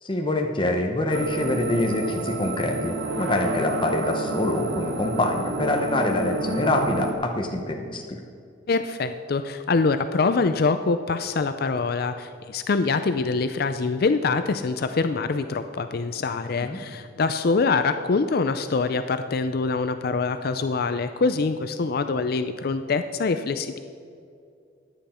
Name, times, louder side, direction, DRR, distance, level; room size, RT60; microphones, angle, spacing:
voice 1, 0.0-8.2 16.6-16.8, left 1 dB, 25° left, 3 dB, 0.8 m, -25 dB
sound 1, 1.1-7.1, right 1 dB, 75° right, 1.3 m, -29 dB
voice 2, 8.7-23.8, left 4 dB, 55° left, 10 dB, 0.4 m, -24 dB
14.5 x 10.0 x 4.3 m, 2.4 s
head